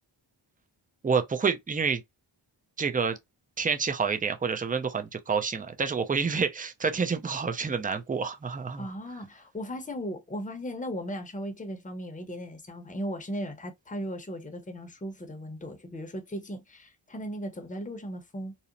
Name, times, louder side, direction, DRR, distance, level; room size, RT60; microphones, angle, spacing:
voice 1, 1.0-2.0 2.8-3.2 3.6-8.9, right 5 dB, 20° right, 0.4 m, -28 dB
voice 2, 8.8-18.5, equal, 15° left, 0.7 m, -37 dB
2.8 x 2.0 x 2.5 m
cardioid pair, 40°, 48 cm